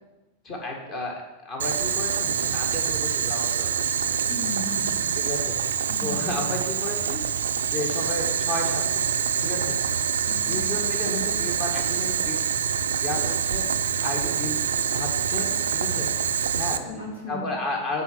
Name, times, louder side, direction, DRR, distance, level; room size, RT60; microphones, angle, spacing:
voice 1, 0.4-4.3 5.2-5.6 6.0-7.2 7.7-9.1 9.4-9.8 10.5-12.5 13.0-14.7 14.9-16.1 16.6-16.8 17.3-18.0, left 2 dB, 35° left, 0 dB, 1.9 m, -33 dB
Boiling, 1.6-16.8, right 7 dB, 65° right, 0.4 m, -26 dB
voice 2, 4.3-4.9 5.9-6.3 7.6-7.7 10.4-10.8 16.8-17.5, left 1 dB, 70° left, -3 dB, 2.7 m, -36 dB
9.4 x 4.2 x 7.1 m, 1.1 s
figure-of-eight pair, 90°, 0 cm